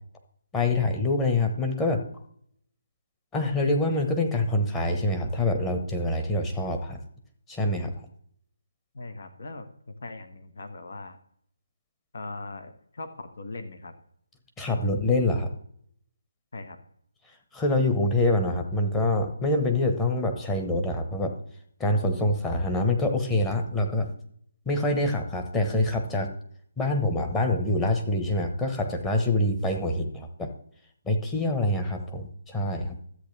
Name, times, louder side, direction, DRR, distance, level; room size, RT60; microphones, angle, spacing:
voice 1, 0.5-2.0 3.3-7.0 7.5-7.9 14.6-15.5 17.5-21.3 21.8-24.1 24.7-26.3 26.8-30.5 31.0-33.0, left 2 dB, 10° left, 3 dB, 1.2 m, -25 dB
voice 2, 8.9-11.2 12.1-13.9 16.5-16.8, left 2 dB, 65° left, 7 dB, 1.4 m, -40 dB
13.0 x 8.2 x 3.4 m, 0.65 s
hypercardioid pair, 155°, 0 cm